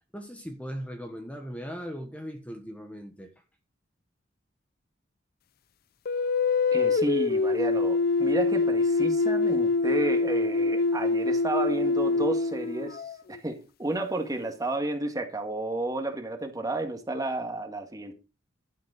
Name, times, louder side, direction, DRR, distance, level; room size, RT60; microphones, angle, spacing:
voice 1, 0.1-3.3, equal, 10° left, 1.2 m, -38 dB
sound 1, 6.0-13.4, left 3 dB, 55° left, 0.5 m, -25 dB
voice 2, 6.7-13.0 13.3-18.1, right 2 dB, 20° right, 1.8 m, -32 dB
12.0 x 7.4 x 4.9 m
head